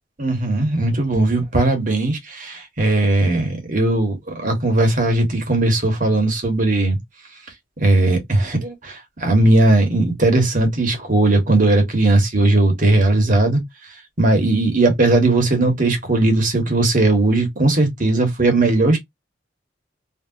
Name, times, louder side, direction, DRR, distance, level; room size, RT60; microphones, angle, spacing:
voice 1, 0.2-4.2 4.4-7.0 7.8-13.6 14.2-19.0, right 2 dB, 45° right, 1.4 m, -18 dB
3.1 x 2.9 x 2.5 m
head